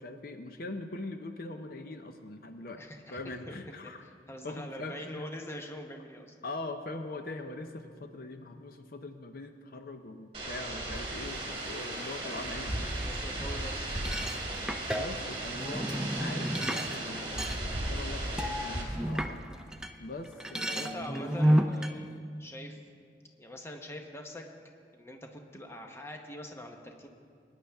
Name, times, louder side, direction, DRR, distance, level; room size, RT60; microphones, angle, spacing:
voice 1, 0.0-2.8 3.1-4.0 4.4-5.3 6.4-13.1 14.9-17.6 17.9-19.4 20.0-21.4, left 2 dB, 55° left, 7 dB, 0.6 m, -42 dB
voice 2, 2.6-3.2 3.5-3.6 3.8-3.9 4.3-6.3 12.9-13.9 20.7-22.8 23.4-24.5 24.9-27.1, left 1 dB, 15° left, 3 dB, 0.9 m, -44 dB
sound 1, 10.3-18.8, right 1 dB, 30° right, 2.3 m, -36 dB
sound 2, 13.9-19.9 20.2-21.9, equal, 5° right, 0.4 m, -31 dB
22.0 x 9.9 x 3.5 m, 2.2 s
head